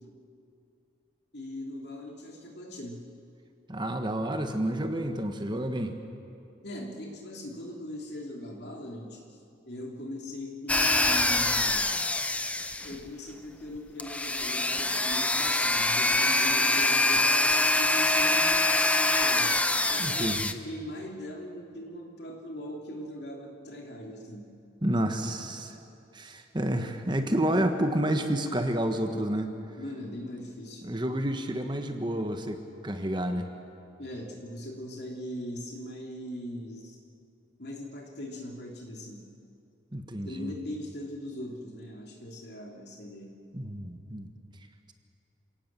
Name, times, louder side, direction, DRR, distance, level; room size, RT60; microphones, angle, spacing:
voice 1, 1.3-3.0 6.6-9.4 9.7-11.8 12.8-19.5 19.9-24.5 29.8-30.8 34.0-37.0 37.6-39.3 40.2-43.3, left 1 dB, 60° left, 1 dB, 3.0 m, -40 dB
voice 2, 3.7-5.9 20.0-20.5 24.8-25.7 26.1-29.5 30.8-32.6 32.8-33.4 39.9-40.5 43.5-44.3, right 1 dB, 25° right, 6 dB, 1.3 m, -29 dB
sound 1, 10.7-13.1 14.0-20.5, left 2 dB, 5° left, 0.7 m, -25 dB
28.0 x 17.5 x 7.6 m, 2.7 s
head